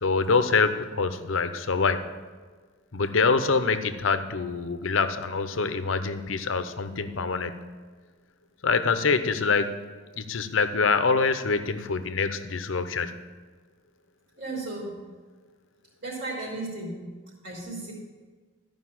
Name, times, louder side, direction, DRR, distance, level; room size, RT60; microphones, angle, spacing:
voice 1, 0.0-2.0 2.9-7.6 8.6-9.8 10.2-13.2, left 4 dB, 80° left, 10 dB, 0.7 m, -25 dB
voice 2, 14.4-15.0 16.0-17.0 17.4-17.9, right 2 dB, 65° right, -9 dB, 3.7 m, -34 dB
13.5 x 5.3 x 7.6 m, 1.4 s
head